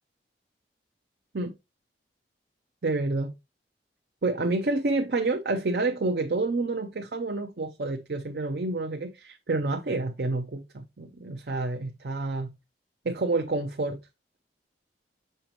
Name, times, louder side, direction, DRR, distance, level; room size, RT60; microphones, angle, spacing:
voice 1, 2.8-3.3 4.2-12.5 13.0-14.0, right 2 dB, 60° right, 0.6 m, -28 dB
6.5 x 5.1 x 2.9 m
head